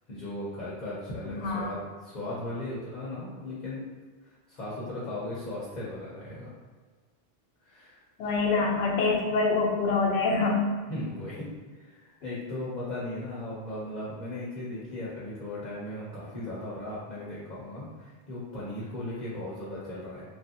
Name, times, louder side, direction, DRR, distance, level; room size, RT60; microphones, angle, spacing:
voice 1, 0.1-3.9 4.2-6.5 7.6-8.1 10.9-20.2, left 1 dB, 50° left, -8 dB, 0.7 m, -37 dB
voice 2, 1.4-1.7 8.2-10.7, left 3 dB, 85° left, 0 dB, 0.8 m, -25 dB
3.1 x 2.5 x 2.7 m, 1.5 s
omnidirectional pair, 1.0 m